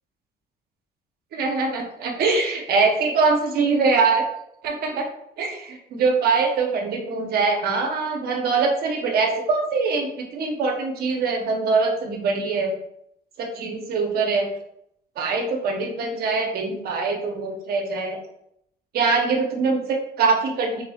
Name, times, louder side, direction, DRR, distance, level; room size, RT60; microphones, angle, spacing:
voice 1, 1.3-4.2 4.6-5.1 5.4-12.7 13.4-14.5 15.2-18.2 18.9-20.8, right 4 dB, 65° right, 1 dB, 1.0 m, -23 dB
4.7 x 3.5 x 2.4 m, 0.75 s
cardioid pair, 110°, 17 cm